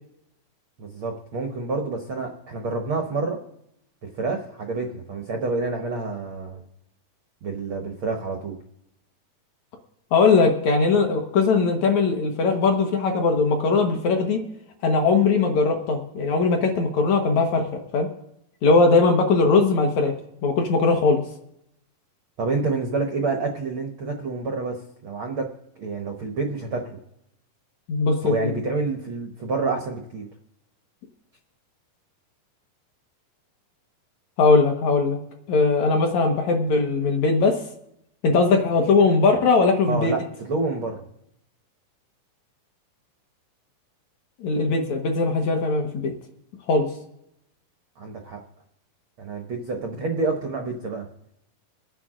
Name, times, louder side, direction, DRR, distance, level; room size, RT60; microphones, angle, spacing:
voice 1, 0.8-3.4 4.0-6.6 7.4-8.6 22.4-25.5 25.8-27.0 28.2-30.3 39.9-41.0 48.0-48.4 49.2-51.0, right 3 dB, 85° right, 3 dB, 1.1 m, -28 dB
voice 2, 10.1-14.4 14.8-18.1 18.6-20.1 20.4-21.2 27.9-28.5 34.4-35.2 35.5-37.6 38.2-40.1 44.4-46.1 46.7-46.9, left 4 dB, 65° left, 3 dB, 2.1 m, -20 dB
22.5 x 9.3 x 3.8 m, 0.79 s
omnidirectional pair, 4.2 m